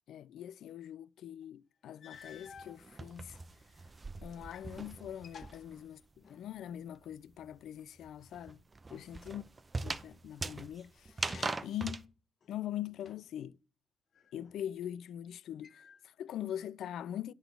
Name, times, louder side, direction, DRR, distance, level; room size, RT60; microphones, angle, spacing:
voice 1, 0.1-3.4 4.2-6.0 6.3-8.6 8.9-9.4 9.8-11.1 11.6-12.1 12.5-13.6 14.3-17.3, left 11 dB, 75° left, 0.3 m, -42 dB
sound 1, 1.4-1.5 2.0-2.8 3.5-4.8 5.0-6.6 11.1-11.9 12.4-13.4 14.1-14.9 15.6-16.4, left 6 dB, 55° left, 0.8 m, -55 dB
sound 2, 2.1-5.9 6.2-12.0, right 3 dB, 25° right, 0.6 m, -41 dB
10.0 x 4.0 x 6.7 m
cardioid pair, 90°, 0 cm